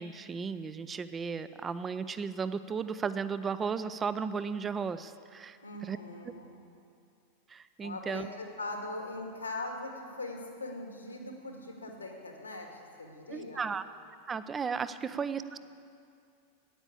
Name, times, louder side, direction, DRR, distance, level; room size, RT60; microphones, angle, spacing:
voice 1, 0.0-6.0 7.5-8.3 13.3-13.8 14.3-15.6, right 5 dB, 20° right, 13 dB, 0.6 m, -35 dB
voice 2, 5.6-6.6 7.8-13.7 15.0-15.1, left 2 dB, 80° left, 2 dB, 2.2 m, -41 dB
14.5 x 9.9 x 8.4 m, 2.4 s
figure-of-eight pair, 90°, 0 cm